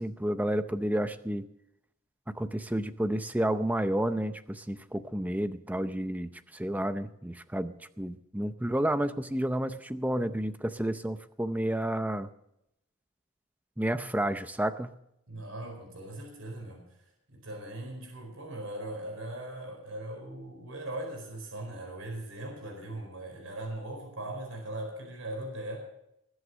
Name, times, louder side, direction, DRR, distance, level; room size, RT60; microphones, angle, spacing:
voice 1, 0.0-1.5 2.3-12.3 13.8-14.9, right 1 dB, 5° right, 11 dB, 0.6 m, -31 dB
voice 2, 15.3-16.8 17.3-25.8, right 1 dB, 70° right, 2 dB, 4.6 m, -39 dB
20.0 x 8.0 x 6.4 m, 0.79 s
head